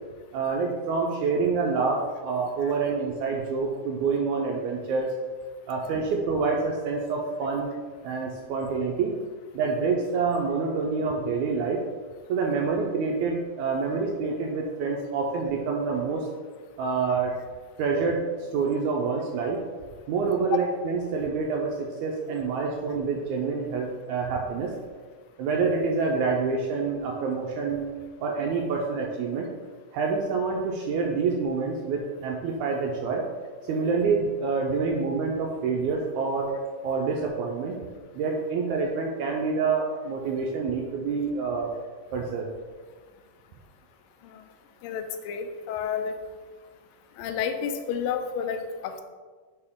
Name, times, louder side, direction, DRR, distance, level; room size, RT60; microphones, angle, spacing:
voice 1, 0.3-5.1 5.7-7.7 8.0-9.1 9.5-11.8 12.3-16.3 16.8-17.3 17.8-19.6 20.1-24.7 25.4-27.9 28.2-29.5 29.9-33.2 33.6-36.5 36.8-37.8 38.1-41.7 42.1-42.5, right 4 dB, 80° right, 0 dB, 1.8 m, -27 dB
voice 2, 44.8-46.1 47.2-49.0, left 7 dB, 90° left, 7 dB, 2.3 m, -30 dB
6.7 x 4.5 x 3.6 m, 1.5 s
omnidirectional pair, 3.9 m